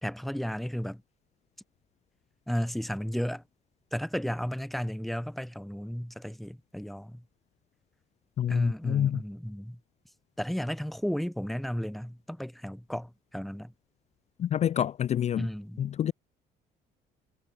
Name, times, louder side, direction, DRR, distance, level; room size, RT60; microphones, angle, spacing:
voice 1, 0.0-1.0 2.5-3.4 3.9-7.2 8.5-9.8 10.4-13.7 15.3-15.9, equal, ahead, 1.0 m, -33 dB
voice 2, 8.4-9.2 14.4-15.5 15.8-16.1, left 10 dB, 40° left, 0.5 m, -27 dB
cardioid pair, 110°, 17 cm